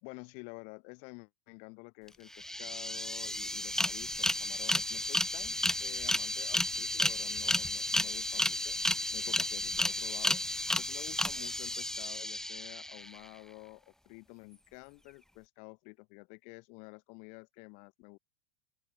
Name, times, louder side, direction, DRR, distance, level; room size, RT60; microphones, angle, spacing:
voice 1, 0.0-18.2, left 36 dB, 55° left, 3.3 m, -50 dB
sound 1, 2.1-2.2 2.3-13.2, left 1 dB, 5° left, 1.6 m, -32 dB
open air
hypercardioid pair, 90°, 16 cm